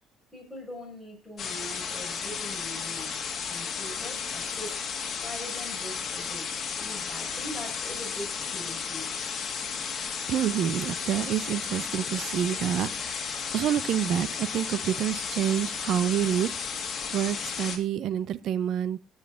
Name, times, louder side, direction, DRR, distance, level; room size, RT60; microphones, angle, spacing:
voice 1, 0.3-3.2 3.5-4.8 5.2-6.5 6.8-9.2, equal, ahead, 5.4 m, -42 dB
sound 1, 1.4-17.8, left 6 dB, 40° left, 2.0 m, -34 dB
voice 2, 10.3-16.5 16.8-19.0, right 10 dB, 60° right, 0.7 m, -28 dB
16.0 x 6.7 x 3.6 m
cardioid pair, 150°, 0 cm